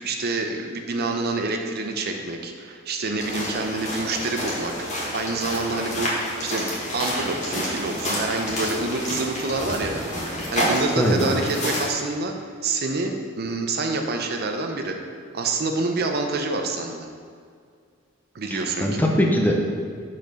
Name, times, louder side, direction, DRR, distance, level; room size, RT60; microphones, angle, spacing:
voice 1, 0.0-6.7 6.9-10.1 10.5-12.3 12.6-15.0 15.3-17.1 18.3-19.0, right 3 dB, 50° right, 4 dB, 0.6 m, -27 dB
sound 1, 3.2-11.9, equal, 35° left, 1.6 m, -29 dB
voice 2, 11.0-11.3 18.5-19.5, equal, 10° left, 0 dB, 0.6 m, -21 dB
6.6 x 4.3 x 4.9 m, 2.1 s
head